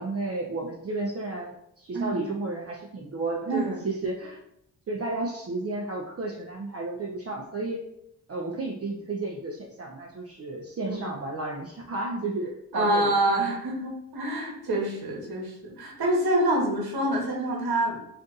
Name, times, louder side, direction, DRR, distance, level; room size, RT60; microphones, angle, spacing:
voice 1, 0.0-4.4 4.9-7.8 8.3-13.1, right 2 dB, 35° right, -1 dB, 0.5 m, -32 dB
voice 2, 12.7-18.0, right 1 dB, 60° right, -1 dB, 1.1 m, -26 dB
2.5 x 2.5 x 3.9 m, 0.76 s
supercardioid pair, 50°, 41 cm